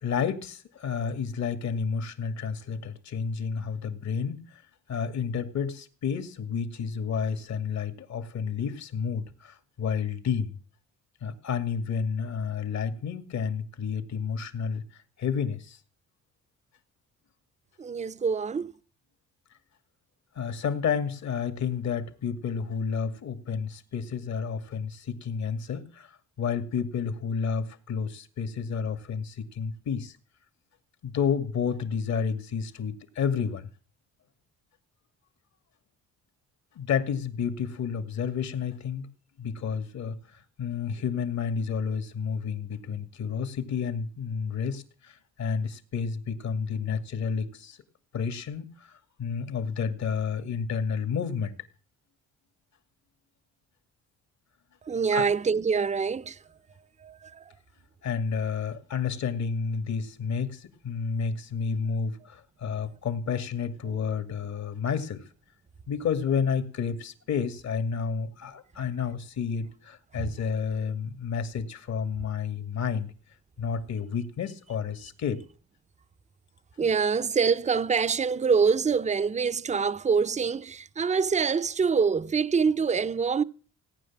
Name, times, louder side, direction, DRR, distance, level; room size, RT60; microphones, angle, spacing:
voice 1, 0.0-4.6 4.9-10.6 11.2-15.8 20.3-30.1 31.0-33.7 36.7-39.1 39.4-47.8 48.1-51.6 55.1-55.2 58.0-65.3 65.9-73.1 73.6-75.4, left 6 dB, 65° left, 2.3 m, -30 dB
voice 2, 17.8-18.7 54.8-56.6 57.0-57.5 70.2-70.3 76.8-83.4, right 5 dB, 25° right, 0.7 m, -25 dB
18.0 x 10.0 x 7.4 m
cardioid pair, 90°, 30 cm